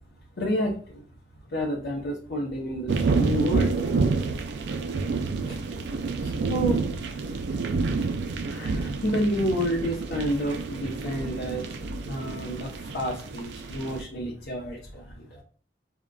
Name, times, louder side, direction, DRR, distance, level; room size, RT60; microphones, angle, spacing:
voice 1, 0.4-1.0 1.5-3.7 5.5-5.9 6.2-6.8 8.5-11.7 12.0-15.4, equal, 75° left, -3 dB, 0.7 m, -30 dB
sound 1, 2.9-14.0, right 4 dB, 75° right, 0.4 m, -28 dB
3.7 x 2.1 x 2.2 m, 0.43 s
head